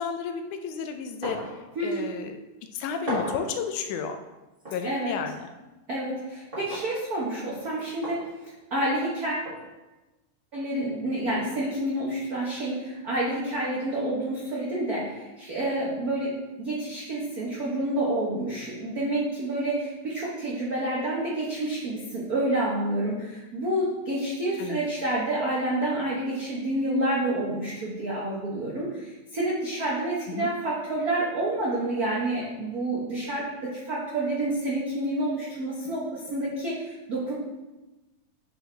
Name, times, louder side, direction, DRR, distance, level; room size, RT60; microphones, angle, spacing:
voice 1, 0.0-1.4 1.8-2.4 2.8-4.2 4.7-5.5 24.6-24.8 30.4-30.5, left 6 dB, 85° left, 6 dB, 2.1 m, -32 dB
sound 1, 1.2-1.6 1.9-2.0 3.1-3.5 4.6-4.8 6.5-6.9 8.0-8.2 9.4-9.6, right 1 dB, 30° right, 1.0 m, -33 dB
voice 2, 1.7-2.1 4.8-5.1 5.9-8.2 8.7-9.5 10.5-37.3, right 1 dB, 75° right, -6 dB, 0.8 m, -29 dB
8.8 x 4.6 x 3.3 m, 1.1 s
omnidirectional pair, 3.5 m